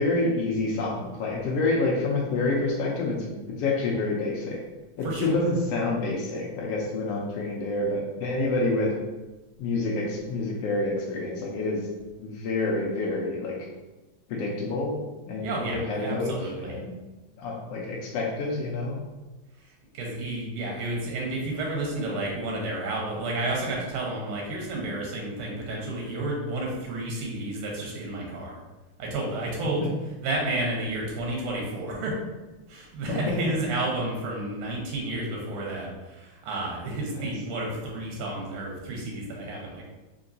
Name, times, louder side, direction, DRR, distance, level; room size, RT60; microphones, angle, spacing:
voice 1, 0.0-4.6 5.0-8.9 9.6-11.8 12.2-13.6 14.3-15.0 15.3-15.6 15.9-16.9 17.4-19.0 33.1-33.5, left 2 dB, 80° left, -2 dB, 1.4 m, -28 dB
voice 2, 5.0-5.4 15.4-16.8 19.6-28.6 29.0-29.9 30.2-32.1 32.7-39.8, right 2 dB, 85° right, -2 dB, 2.4 m, -31 dB
5.1 x 2.8 x 2.6 m, 1.1 s
omnidirectional pair, 3.4 m